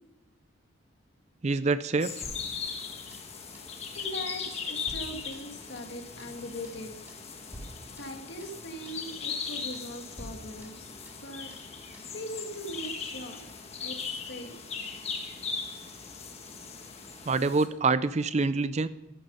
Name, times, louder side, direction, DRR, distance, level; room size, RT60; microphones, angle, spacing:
voice 1, 1.4-2.1 17.3-18.9, right 3 dB, 35° right, 15 dB, 0.5 m, -26 dB
sound 1, 2.0-17.7, left 5 dB, 35° left, 1.5 m, -39 dB
sound 2, 2.2-3.3 3.5-3.7 4.0-4.2 4.4-5.9 6.2-6.4 6.6-6.8 7.1-7.3 7.5-8.6 8.9-9.0 9.3-9.5 9.7-9.9 10.2-11.3 11.5-11.7 11.9-12.1 12.4-12.6, equal, 10° right, 4.2 m, -48 dB
voice 2, 3.9-7.2 7.6-10.9 11.2-11.8 12.1-14.5, equal, 60° left, 4 dB, 2.0 m, -41 dB
13.5 x 12.5 x 5.5 m, 1.0 s
head